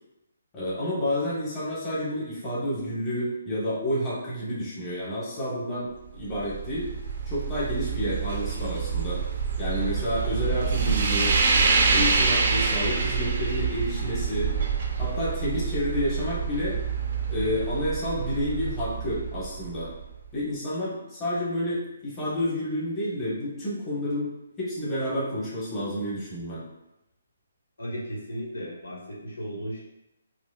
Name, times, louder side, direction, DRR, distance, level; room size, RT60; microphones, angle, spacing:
voice 1, 0.5-6.9 7.3-9.2 9.6-11.3 11.9-14.5 15.0-16.8 17.3-19.9 20.3-24.3 24.6-26.6, left 1 dB, 15° left, -10 dB, 1.1 m, -30 dB
sound 1, 6.1-20.2, right 5 dB, 50° right, 0.5 m, -27 dB
voice 2, 27.8-29.8, equal, 85° left, -4 dB, 1.2 m, -35 dB
4.8 x 2.1 x 2.3 m, 0.92 s
hypercardioid pair, 155°, 0 cm